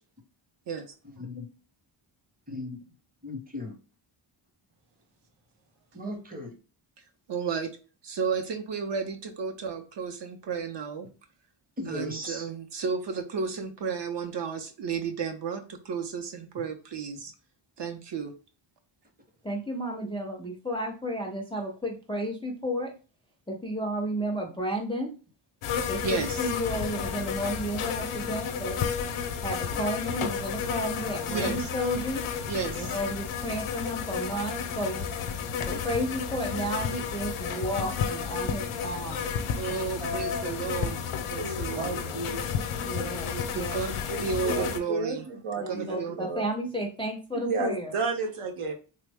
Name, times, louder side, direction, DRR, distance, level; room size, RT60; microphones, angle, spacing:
voice 1, 1.1-1.5 2.5-2.8 3.2-3.8 5.9-6.5 11.8-12.5 16.6-16.7 40.0-40.8 41.7-43.5, left 1 dB, 20° right, 3 dB, 0.7 m, -37 dB
voice 2, 7.3-7.7 8.0-11.1 11.9-17.3 17.8-18.3 26.0-26.4 31.3-31.6 32.5-32.9 39.6-42.0 43.5-45.2 45.7-46.3, right 5 dB, 60° right, 6 dB, 0.6 m, -33 dB
voice 3, 19.4-22.9 23.5-25.1 25.9-28.8 29.4-32.2 32.7-35.1 35.6-39.3 42.8-43.8 45.6-47.9, equal, 15° left, 1 dB, 0.3 m, -32 dB
sound 1, 25.6-44.8, left 7 dB, 80° left, 0.6 m, -32 dB
voice 4, 41.4-42.3 44.1-46.4 47.3-48.7, right 3 dB, 85° right, 3 dB, 0.9 m, -32 dB
3.2 x 2.0 x 3.4 m, 0.36 s
wide cardioid pair, 155°, 50 cm